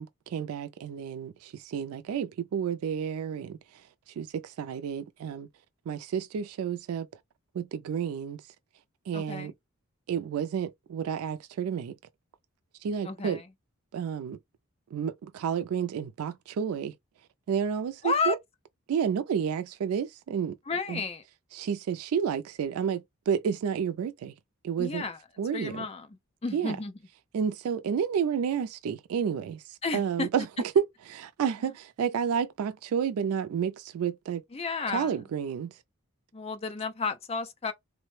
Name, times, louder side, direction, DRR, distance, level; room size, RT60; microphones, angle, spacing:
voice 1, 0.0-5.5 5.9-7.1 7.5-8.4 9.1-9.5 10.1-12.0 12.8-13.4 13.9-14.4 14.9-17.0 17.5-18.4 18.9-20.6 20.9-21.0 21.5-24.3 24.6-25.0 25.4-25.8 26.5-26.8 27.3-34.4 34.9-35.8, right 7 dB, 80° right, 0.3 m, -30 dB
voice 2, 9.1-9.5 13.0-13.5 18.0-18.4 20.7-21.2 24.8-25.2 25.5-26.1 26.4-26.9 29.8-30.3 34.5-35.1 36.3-37.7, left 4 dB, 25° left, 0.4 m, -32 dB
3.1 x 2.1 x 3.1 m
head